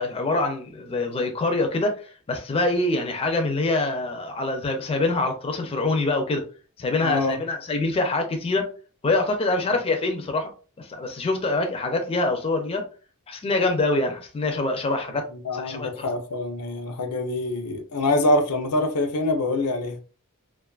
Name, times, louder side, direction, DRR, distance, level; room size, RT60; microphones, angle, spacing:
voice 1, 0.0-2.0 2.3-6.4 6.8-8.7 9.0-10.5 10.8-12.9 13.3-15.3 15.5-16.1, left 2 dB, 25° left, 0.4 m, -25 dB
voice 2, 7.0-7.4 15.3-19.9, left 2 dB, 85° left, 0.5 m, -25 dB
2.4 x 2.3 x 2.3 m
head